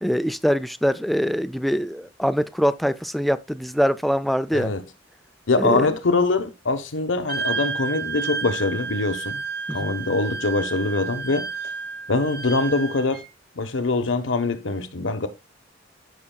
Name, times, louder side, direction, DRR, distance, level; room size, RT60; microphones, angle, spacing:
voice 1, 0.0-4.7 5.6-5.9 9.7-9.9, equal, ahead, 0.4 m, -23 dB
voice 2, 5.5-9.4 9.7-11.5 12.1-13.2 13.5-15.3, left 3 dB, 80° left, 1.0 m, -23 dB
Wind instrument woodwind instrument, 7.3-13.3, right 4 dB, 50° right, 0.8 m, -31 dB
14.5 x 5.3 x 2.2 m
head